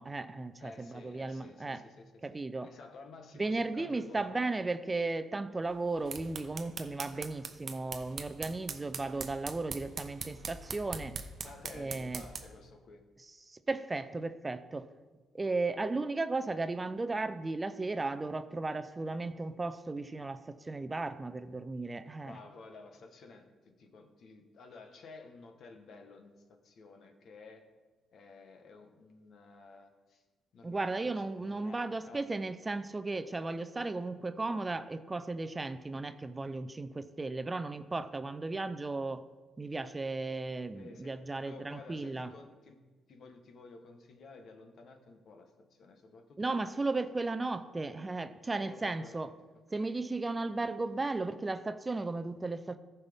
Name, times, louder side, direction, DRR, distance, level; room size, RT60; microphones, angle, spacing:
voice 1, 0.0-1.8 2.2-2.7 3.4-11.2 11.7-12.2 13.4-14.9 15.3-22.4 30.6-39.2 39.6-42.3 46.4-49.3 49.7-52.8, right 3 dB, 20° right, 10 dB, 0.5 m, -35 dB
voice 2, 0.6-4.6 11.4-13.0 22.2-26.3 26.6-27.7 28.1-30.2 30.5-32.3 40.7-41.2 41.4-42.8 43.1-46.8 48.6-49.3 49.7-49.9, left 3 dB, 60° left, 5 dB, 1.1 m, -53 dB
sound 1, 5.8-12.6, right 5 dB, 50° right, 0.8 m, -43 dB
14.5 x 5.5 x 3.5 m, 1.3 s
cardioid pair, 90°, 0 cm